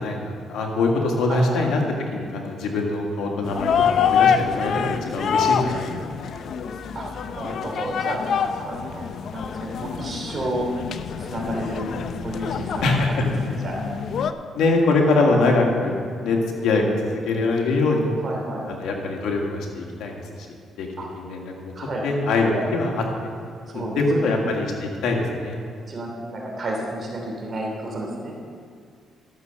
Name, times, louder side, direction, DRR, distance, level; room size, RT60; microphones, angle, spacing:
voice 1, 0.0-1.8 2.1-6.5 12.8-13.1 14.5-15.9 16.2-18.1 18.7-20.5 20.8-20.9 21.1-21.7 22.0-22.9 23.7-25.6, left 2 dB, 80° left, 0 dB, 2.0 m, -23 dB
voice 2, 1.3-1.6 6.9-7.1 7.4-8.2 8.6-9.0 9.3-10.7 11.2-11.9 12.2-13.8 14.5-14.6 18.2-18.6 21.0-21.1 21.7-22.0 22.4-22.6 23.7-24.3 25.9-28.4, right 1 dB, 45° right, -1 dB, 3.0 m, -31 dB
sound 1, 3.4-14.3, left 7 dB, 65° left, 0.6 m, -26 dB
12.5 x 7.1 x 6.7 m, 2.2 s
cardioid pair, 90°, 0 cm